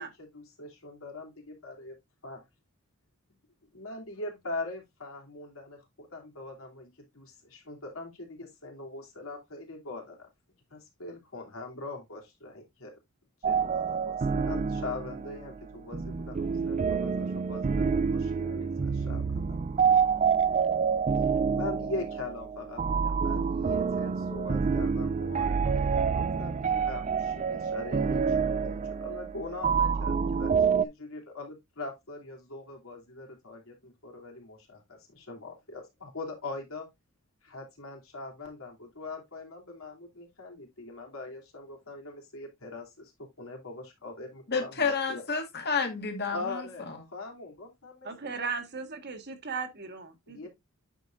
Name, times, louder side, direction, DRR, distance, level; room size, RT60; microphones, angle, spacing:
voice 1, 0.0-2.0 2.2-2.4 3.7-10.3 10.7-13.0 13.4-19.6 21.2-36.9 37.4-45.2 46.3-48.5 50.3-50.5, left 2 dB, 80° left, 3.0 m, -42 dB
sound 1, 13.4-30.8, right 6 dB, 35° right, 0.4 m, -28 dB
voice 2, 44.5-46.6, left 5 dB, 55° left, 1.9 m, -30 dB
voice 3, 48.0-50.5, right 5 dB, 55° right, 1.5 m, -37 dB
9.0 x 6.0 x 2.5 m
head